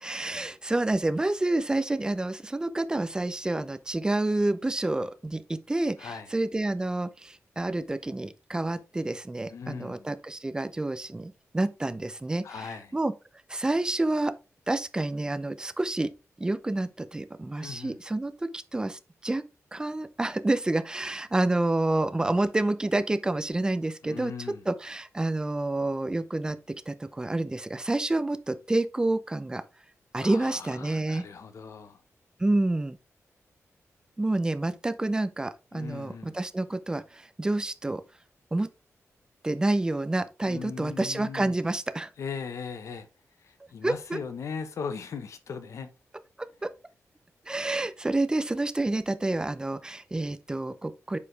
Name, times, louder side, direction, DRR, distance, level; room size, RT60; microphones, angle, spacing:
voice 1, 0.0-13.1 13.5-14.3 14.7-16.1 16.4-19.4 19.7-24.3 24.7-26.6 26.9-29.6 30.1-31.2 32.4-33.0 34.2-38.0 38.5-38.7 39.4-42.1 43.8-44.2 46.6-46.7 47.5-51.2, right 2 dB, 15° right, 0.6 m, -28 dB
voice 2, 6.0-6.3 9.5-10.1 12.4-13.0 17.6-18.0 24.0-24.6 30.2-32.0 35.7-36.4 40.4-41.5 42.2-43.1 43.4-45.9, left 6 dB, 70° left, 1.2 m, -38 dB
8.3 x 5.0 x 3.4 m
wide cardioid pair, 165°, 5 cm